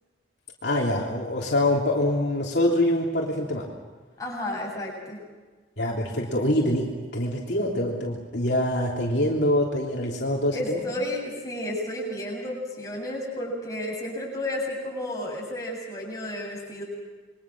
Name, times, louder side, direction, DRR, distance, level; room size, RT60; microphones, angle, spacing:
voice 1, 0.6-3.7 5.8-6.9 7.1-10.8, left 1 dB, 60° left, -3 dB, 3.3 m, -25 dB
voice 2, 4.2-5.2 10.5-16.8, left 1 dB, 20° left, -2 dB, 7.6 m, -32 dB
28.0 x 23.5 x 6.2 m, 1.3 s
head